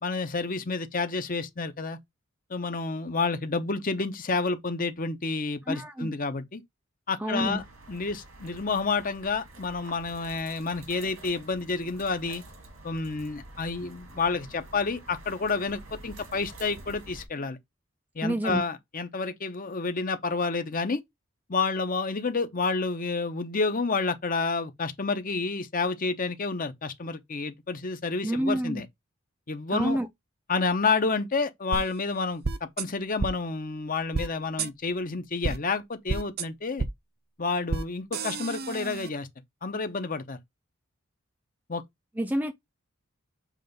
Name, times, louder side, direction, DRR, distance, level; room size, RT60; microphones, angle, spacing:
voice 1, 0.0-2.0 2.5-6.6 7.1-7.6 7.9-12.4 12.8-17.6 18.1-21.0 21.5-28.9 29.5-30.0 30.5-32.4 32.8-36.9 37.4-39.3 39.6-40.4 41.7-41.8, left 4 dB, 40° left, 0.9 m, -29 dB
voice 2, 5.7-6.1 7.2-7.6 18.2-18.6 28.2-28.8 29.7-30.1 42.2-42.5, right 1 dB, 10° right, 0.5 m, -28 dB
sound 1, 7.5-17.3, right 2 dB, 80° right, 2.1 m, -48 dB
sound 2, 31.7-31.8 32.4-32.8 33.2-33.3 34.1-34.3 34.6-34.7 35.4-35.6 36.1-36.4 36.8-36.9 37.7-37.8 38.1-39.1, right 4 dB, 50° right, 0.6 m, -30 dB
7.5 x 2.6 x 5.2 m
head